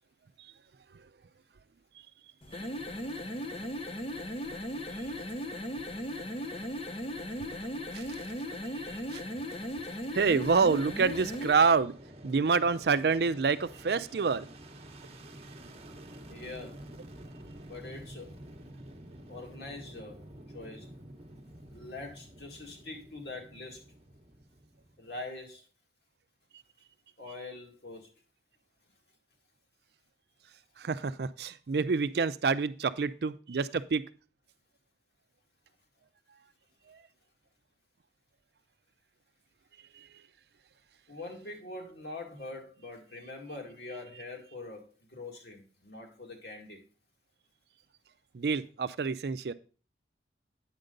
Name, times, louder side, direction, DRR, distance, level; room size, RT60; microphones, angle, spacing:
sound 1, 2.4-11.6, equal, 30° left, 0.7 m, -37 dB
voice 1, 8.7-9.2 10.1-11.9 12.2-14.5 30.8-34.0 36.9-37.0 40.0-40.1 48.3-49.5, right 5 dB, 65° right, 13 dB, 0.4 m, -27 dB
Fixed-wing aircraft airplane, 10.2-25.4, right 1 dB, 35° right, 0.9 m, -49 dB
voice 2, 16.3-16.8 17.6-18.3 19.3-20.3 20.5-20.9 21.7-23.8 25.0-25.6 27.2-28.2 41.1-46.8, left 2 dB, 65° left, 1 dB, 2.0 m, -44 dB
8.9 x 6.6 x 3.8 m, 0.36 s
head